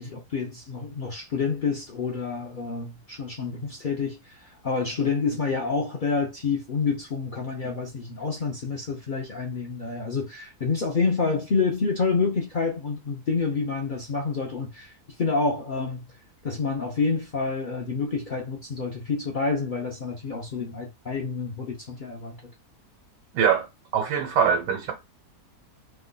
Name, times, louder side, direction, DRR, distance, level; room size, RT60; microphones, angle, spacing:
voice 1, 0.0-4.2 4.6-14.9 15.2-16.0 16.4-22.4, left 4 dB, 80° left, 0.4 m, -28 dB
voice 2, 23.3-23.7 23.9-24.9, right 7 dB, 85° right, 1.3 m, -22 dB
2.9 x 2.2 x 3.8 m
omnidirectional pair, 1.8 m